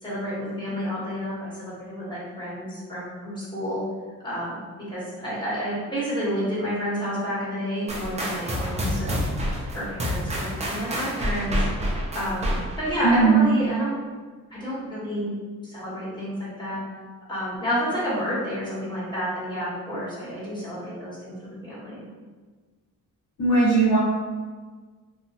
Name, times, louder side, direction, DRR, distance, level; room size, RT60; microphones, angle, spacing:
voice 1, 0.0-3.8 4.2-9.2 9.7-11.7 12.1-13.9 14.5-15.3 15.6-16.8 17.3-22.0, equal, 15° left, -8 dB, 1.0 m, -30 dB
sound 1, 7.9-13.0, equal, 20° right, 0.4 m, -28 dB
voice 2, 13.0-13.4 23.4-24.0, right 4 dB, 75° left, -10 dB, 1.2 m, -18 dB
2.9 x 2.1 x 2.7 m, 1.4 s
cardioid pair, 140°, 32 cm